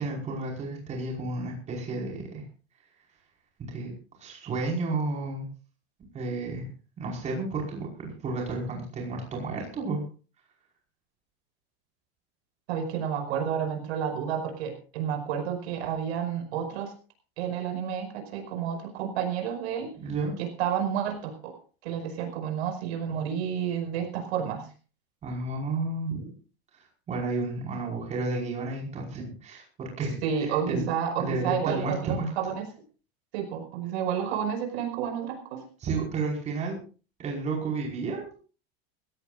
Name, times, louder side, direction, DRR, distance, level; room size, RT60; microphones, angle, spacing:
voice 1, 0.0-2.4 3.7-3.9 4.2-5.5 6.1-6.7 7.0-10.0 20.0-20.3 25.2-26.3 27.1-29.6 30.0-30.8 31.2-32.2 35.8-36.7 37.2-38.3, right 3 dB, 20° right, -1 dB, 5.2 m, -31 dB
voice 2, 12.7-16.9 17.4-19.9 20.4-21.6 21.8-24.7 30.2-32.7 33.3-35.6, right 8 dB, 90° right, 5 dB, 5.3 m, -30 dB
22.5 x 16.5 x 2.5 m, 0.37 s
supercardioid pair, 175°, 32 cm